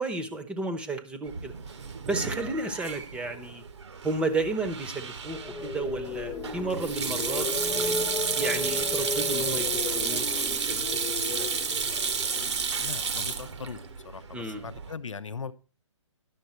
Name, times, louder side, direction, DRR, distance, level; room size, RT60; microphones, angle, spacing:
voice 1, 0.0-1.5 2.1-3.6 4.0-7.9 8.3-11.5 14.3-14.7, right 3 dB, 5° right, 8 dB, 0.8 m, -33 dB
Sink (filling or washing), 1.3-14.9, right 5 dB, 60° right, 1.1 m, -32 dB
sound 1, 5.3-13.4, left 4 dB, 10° left, 0.4 m, -35 dB
voice 2, 12.8-15.5, left 5 dB, 75° left, 13 dB, 0.7 m, -40 dB
11.0 x 7.0 x 4.4 m, 0.34 s
figure-of-eight pair, 135°, 16 cm